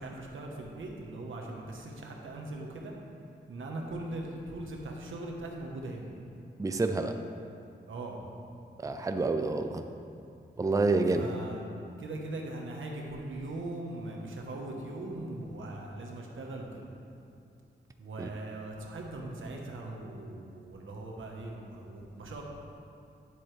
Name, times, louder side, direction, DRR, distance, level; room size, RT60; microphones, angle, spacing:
voice 1, 0.0-2.9 3.5-6.1 7.9-8.2 11.1-11.6 12.0-16.8 18.0-22.4, right 2 dB, 85° right, 0 dB, 1.1 m, -40 dB
voice 2, 6.6-7.1 8.8-9.8 10.6-11.3 18.2-18.3, right 3 dB, 15° right, 6 dB, 0.5 m, -28 dB
9.8 x 7.4 x 3.3 m, 2.5 s
cardioid pair, 75°, 20 cm